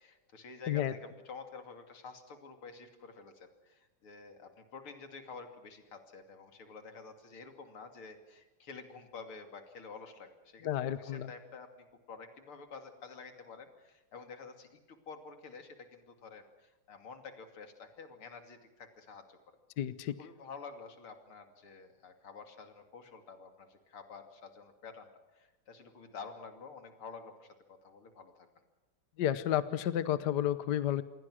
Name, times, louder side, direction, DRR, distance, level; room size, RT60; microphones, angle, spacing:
voice 1, 0.0-19.4 20.2-28.5, left 4 dB, 80° left, 6 dB, 3.5 m, -50 dB
voice 2, 10.6-11.3 19.8-20.2 29.2-31.0, left 11 dB, 60° left, 14 dB, 1.3 m, -31 dB
28.0 x 21.5 x 6.3 m, 1.1 s
omnidirectional pair, 2.3 m